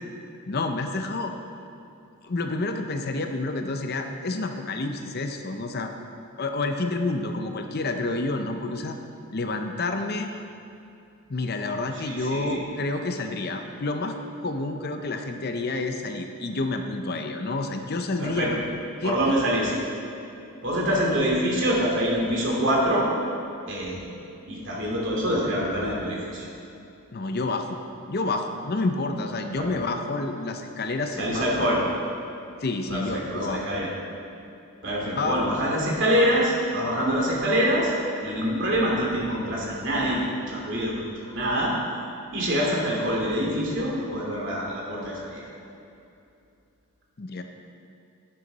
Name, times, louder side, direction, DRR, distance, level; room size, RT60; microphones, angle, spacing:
voice 1, 0.4-1.3 2.2-5.9 6.4-9.0 9.3-10.3 11.3-14.2 14.4-18.6 19.0-19.4 27.1-27.8 28.1-31.5 32.6-33.6 35.0-35.4 47.2-47.4, left 2 dB, 45° left, 5 dB, 0.6 m, -29 dB
voice 2, 12.0-12.6 18.2-18.5 19.0-19.7 20.6-23.1 23.7-24.1 24.5-26.5 29.6-29.7 31.2-31.8 32.9-33.9 34.8-37.9 38.2-41.7 42.3-45.4, equal, 55° right, -3 dB, 2.6 m, -25 dB
11.5 x 9.5 x 4.1 m, 2.7 s
head